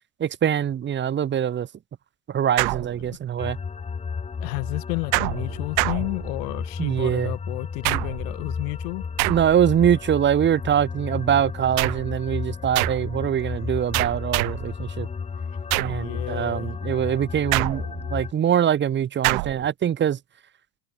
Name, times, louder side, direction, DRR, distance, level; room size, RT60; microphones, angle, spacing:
voice 1, 0.2-1.7 2.3-3.6 6.8-7.3 9.3-15.1 15.8-17.8 18.1-20.2, right 9 dB, 20° right, 1.5 m, -23 dB
sound 1, 2.6-3.4 5.1-6.6 7.8-8.4 9.2-9.8 11.8-12.2 12.8-13.2 13.9-14.7 15.7-16.1 17.5-18.2 19.2-19.7, right 40 dB or more, 60° right, 1.5 m, -26 dB
sound 2, 3.4-18.3, left 5 dB, 15° left, 1.5 m, -33 dB
voice 2, 4.4-9.1 15.5-15.6 15.9-16.7, left 29 dB, 70° left, 2.3 m, -32 dB
supercardioid pair, 150°, 49 cm